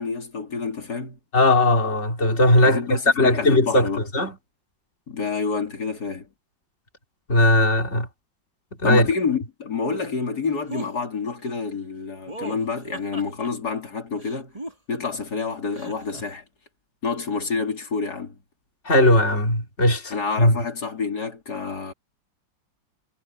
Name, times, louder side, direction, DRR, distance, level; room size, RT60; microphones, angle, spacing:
voice 1, 0.0-1.2 2.6-4.0 5.1-6.3 8.8-14.5 14.9-16.4 17.0-18.4 20.1-21.9, left 5 dB, 55° left, 3.5 m, -28 dB
voice 2, 1.3-2.8 3.2-3.9 4.1-4.4 7.3-8.1 8.8-9.1 18.9-20.6, left 1 dB, 35° left, 3.6 m, -18 dB
sound 1, 10.7-10.9 12.3-13.5 14.2-15.2 15.7-16.2, right 1 dB, 15° right, 3.7 m, -37 dB
omnidirectional pair, 2.0 m